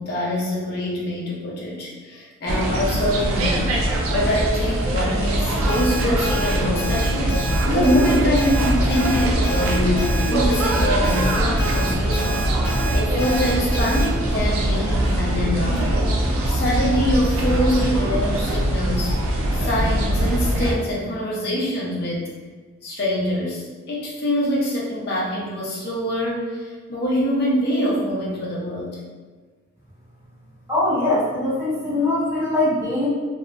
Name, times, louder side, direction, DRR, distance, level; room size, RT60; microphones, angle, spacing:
voice 1, 0.0-3.8 4.1-7.4 7.7-12.5 12.9-16.0 16.5-19.1 19.5-22.3 22.8-29.0, equal, 50° left, -4 dB, 0.6 m, -24 dB
sound 1, 2.5-20.7, right 1 dB, 90° right, 0.4 m, -22 dB
Alarm, 5.7-14.0, right 1 dB, 10° left, 0.4 m, -32 dB
voice 2, 30.7-33.1, left 2 dB, 10° right, -14 dB, 1.0 m, -22 dB
2.7 x 2.2 x 2.4 m, 1.4 s
head